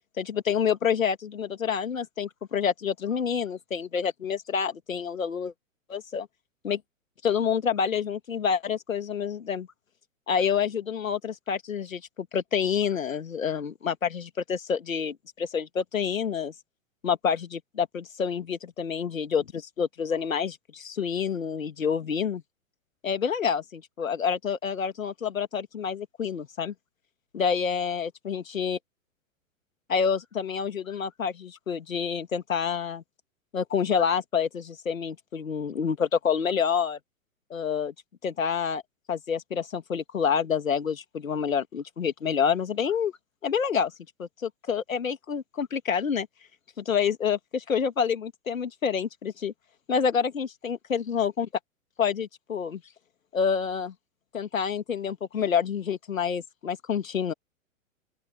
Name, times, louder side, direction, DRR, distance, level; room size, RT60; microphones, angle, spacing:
voice 1, 0.2-5.5 5.9-6.3 6.6-6.8 7.2-9.7 10.3-16.5 17.0-22.4 23.0-26.7 27.3-28.8 29.9-33.0 33.5-37.0 37.5-37.9 38.2-38.8 39.1-43.1 43.4-43.9 44.2-46.3 46.8-49.5 49.9-51.5 52.0-52.8 53.3-53.9 54.3-57.3, left 7 dB, 75° left, 2.5 m, -28 dB
open air
figure-of-eight pair, 105°, 40 cm